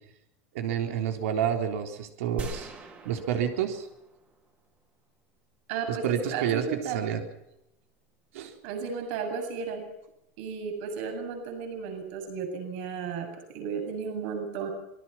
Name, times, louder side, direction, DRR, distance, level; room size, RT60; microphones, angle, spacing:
voice 1, 0.5-2.7 3.1-3.9 5.9-7.2 8.3-8.5, right 9 dB, 75° right, 5 dB, 3.7 m, -29 dB
sound 1, 2.4-4.7, right 3 dB, 20° right, 3.9 m, -42 dB
voice 2, 5.7-7.0 8.6-9.9 10.4-14.7, right 6 dB, 50° right, 5 dB, 7.7 m, -34 dB
26.5 x 21.5 x 6.0 m, 0.85 s
supercardioid pair, 170°, 8 cm